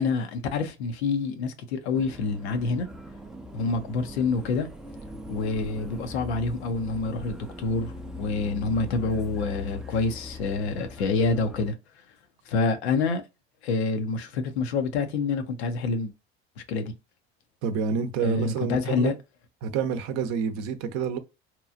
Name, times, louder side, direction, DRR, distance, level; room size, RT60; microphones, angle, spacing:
voice 1, 0.0-2.9 3.5-4.7 5.3-11.7 12.5-13.2 13.6-16.1 16.7-16.9 18.2-19.1, left 4 dB, 85° left, 0.6 m, -27 dB
sound 1, 1.9-11.7, left 2 dB, ahead, 0.3 m, -40 dB
voice 2, 17.6-19.1 19.6-21.2, right 6 dB, 60° right, 0.6 m, -28 dB
2.9 x 2.3 x 2.4 m
hypercardioid pair, 75°, 32 cm